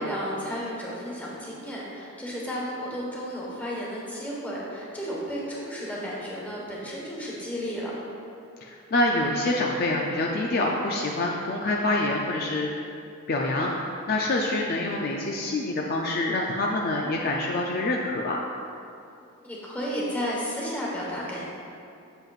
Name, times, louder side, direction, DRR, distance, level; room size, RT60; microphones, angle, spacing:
voice 1, 0.0-7.9 19.4-21.4, equal, 5° left, -5 dB, 1.2 m, -33 dB
voice 2, 8.6-12.7 13.3-18.4, left 2 dB, 45° left, -1 dB, 0.4 m, -26 dB
7.8 x 7.5 x 2.4 m, 2.6 s
head